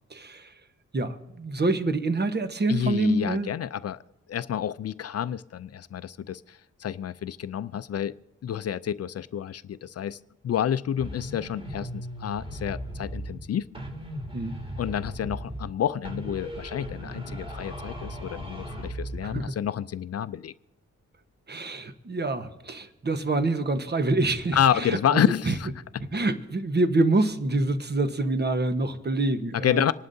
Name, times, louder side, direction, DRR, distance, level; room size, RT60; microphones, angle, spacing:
voice 1, 0.1-0.5 0.9-3.5 14.3-14.6 19.2-19.5 21.5-25.5 26.1-29.9, right 2 dB, 35° right, 9 dB, 1.1 m, -26 dB
voice 2, 2.7-4.0 4.3-8.1 8.4-10.2 10.4-13.7 14.8-20.5 24.5-25.7 29.5-29.9, left 9 dB, 55° left, 15 dB, 0.4 m, -29 dB
sound 1, 11.0-13.5 13.7-15.8 16.0-19.5, equal, 20° right, 3.3 m, -37 dB
27.0 x 11.5 x 2.7 m, 1.0 s
cardioid pair, 85°, 30 cm